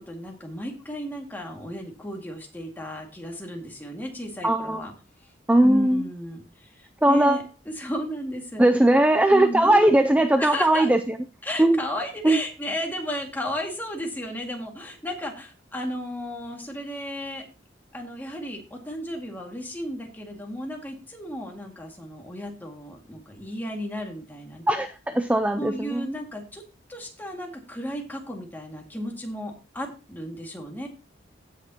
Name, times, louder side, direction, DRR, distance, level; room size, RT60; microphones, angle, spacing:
voice 1, 0.0-4.9 5.6-8.7 9.3-10.0 10.4-10.9 11.4-17.4 17.9-24.6 25.6-26.6 26.9-30.9, left 1 dB, 10° left, 2.0 m, -34 dB
voice 2, 4.4-4.8 5.5-6.0 7.0-7.4 8.6-11.2 11.6-11.8 12.2-12.4 24.7-26.0, right 1 dB, 5° right, 0.4 m, -19 dB
16.0 x 6.5 x 2.9 m
head